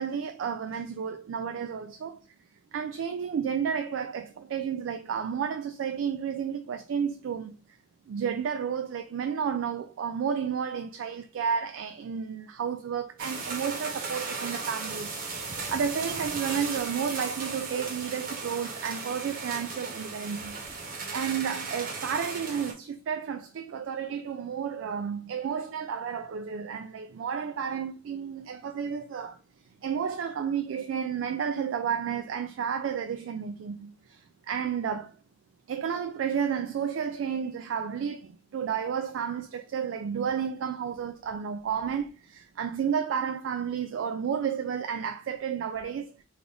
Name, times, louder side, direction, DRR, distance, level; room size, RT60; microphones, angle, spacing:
voice 1, 0.0-2.2 2.7-7.5 8.1-15.1 15.4-20.6 21.1-29.4 29.8-34.2 34.5-35.1 35.7-46.1, right 7 dB, 70° right, 0.3 m, -31 dB
sound 1, 13.2-22.7, right 4 dB, 45° right, 0.8 m, -36 dB
3.4 x 2.4 x 3.6 m
head